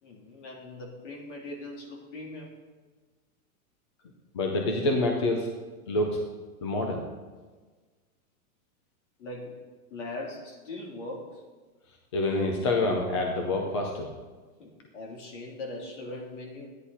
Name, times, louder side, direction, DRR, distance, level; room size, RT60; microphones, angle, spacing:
voice 1, 0.0-2.5 9.2-9.6 9.9-11.4 14.6-16.7, left 2 dB, 55° left, -1 dB, 3.2 m, -40 dB
voice 2, 4.3-5.5 5.9-6.2 6.6-7.0 12.1-14.1, left 2 dB, 20° left, 2 dB, 0.5 m, -27 dB
13.0 x 10.0 x 4.1 m, 1.4 s
supercardioid pair, 175°, 44 cm